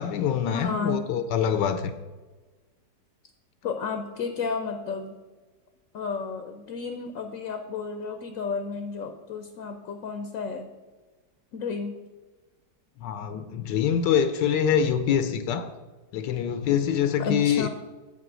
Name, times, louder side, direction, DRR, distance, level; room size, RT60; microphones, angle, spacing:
voice 1, 0.0-2.0 13.0-15.7 16.1-17.7, left 8 dB, 75° left, 1.2 m, -25 dB
voice 2, 0.5-1.0 3.6-5.1 5.9-10.7 11.5-12.0 17.2-17.7, left 5 dB, 60° left, 0.9 m, -32 dB
8.2 x 5.9 x 6.1 m
omnidirectional pair, 2.0 m